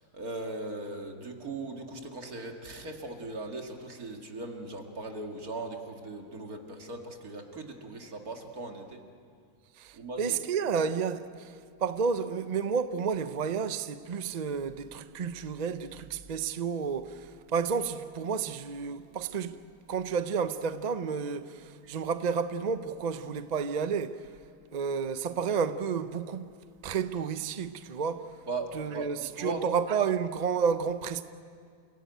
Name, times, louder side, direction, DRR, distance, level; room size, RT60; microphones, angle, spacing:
voice 1, 0.1-9.0 9.9-10.4 21.8-21.9 28.5-29.6, right 2 dB, 65° right, 2.6 m, -39 dB
voice 2, 9.8-11.5 11.8-19.6 19.9-24.3 24.7-26.5 26.8-28.3 28.7-31.2, right 6 dB, 45° right, 0.5 m, -31 dB
29.0 x 17.0 x 9.1 m
omnidirectional pair, 1.7 m